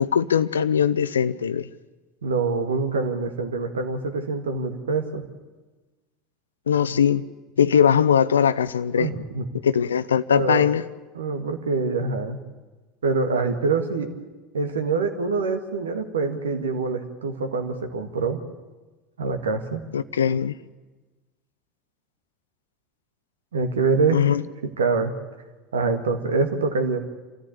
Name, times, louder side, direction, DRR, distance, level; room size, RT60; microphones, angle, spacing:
voice 1, 0.0-1.7 6.7-7.3 7.6-9.1 9.6-10.8 19.9-20.6 24.1-24.4, left 8 dB, 80° left, 0.6 m, -20 dB
voice 2, 2.2-5.2 9.0-9.4 10.3-10.7 11.1-12.4 13.0-14.1 14.5-18.4 19.2-19.8 23.5-24.2 24.6-25.1 25.7-27.0, right 4 dB, 75° right, 1.8 m, -25 dB
27.5 x 14.0 x 8.6 m
figure-of-eight pair, 75°, 0 cm